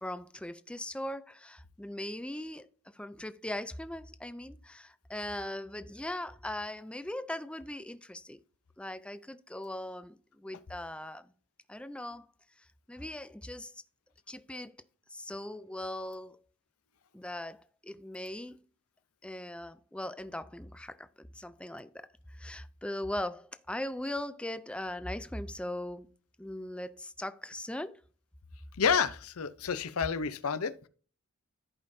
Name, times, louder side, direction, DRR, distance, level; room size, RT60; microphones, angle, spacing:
voice 1, 0.0-2.7 2.9-8.4 8.8-11.3 11.7-12.3 12.6-13.8 14.3-14.7 15.1-16.4 17.1-18.6 19.2-26.1 26.4-28.0, left 1 dB, 5° left, 0.4 m, -40 dB
voice 2, 28.8-30.7, left 6 dB, 85° left, 0.7 m, -29 dB
14.5 x 5.3 x 2.7 m
head